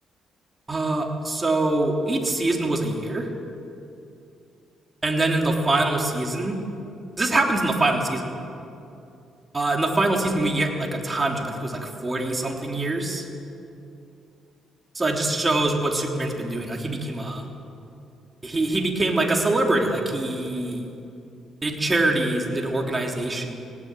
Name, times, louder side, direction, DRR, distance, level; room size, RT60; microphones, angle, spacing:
voice 1, 0.7-3.3 5.0-6.6 7.2-8.3 9.5-13.3 15.0-17.4 18.4-20.9 21.6-23.7, right 2 dB, 20° right, 1 dB, 3.4 m, -24 dB
18.0 x 17.5 x 9.3 m, 2.6 s
cardioid pair, 90°, 0 cm